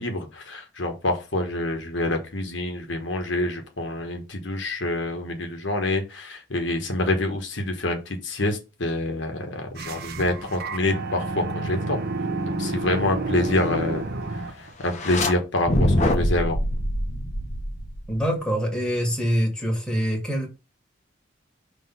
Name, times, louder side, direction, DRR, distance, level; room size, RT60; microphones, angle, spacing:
voice 1, 0.0-12.0 12.4-14.1 14.6-16.6, left 2 dB, 70° left, 1.2 m, -27 dB
sound 1, 9.7-14.7, right 2 dB, 50° right, 0.9 m, -30 dB
sound 2, 14.9-15.3 15.7-18.2, left 1 dB, 35° left, 1.0 m, -24 dB
voice 2, 18.1-20.5, equal, 5° left, 1.7 m, -25 dB
5.9 x 3.2 x 5.4 m
head